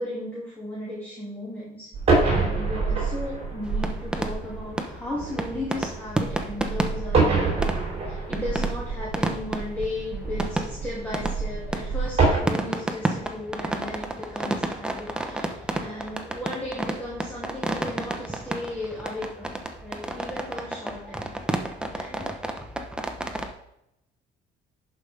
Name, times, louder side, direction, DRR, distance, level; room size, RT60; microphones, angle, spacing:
voice 1, 0.0-1.9 2.4-21.3 21.9-22.3, left 1 dB, 10° left, -7 dB, 2.5 m, -36 dB
sound 1, 1.9-12.4, right 3 dB, 40° right, 3.3 m, -26 dB
sound 2, 3.6-23.5, right 1 dB, 5° right, 0.9 m, -32 dB
11.0 x 5.1 x 3.5 m, 0.82 s
cardioid pair, 110°, 17 cm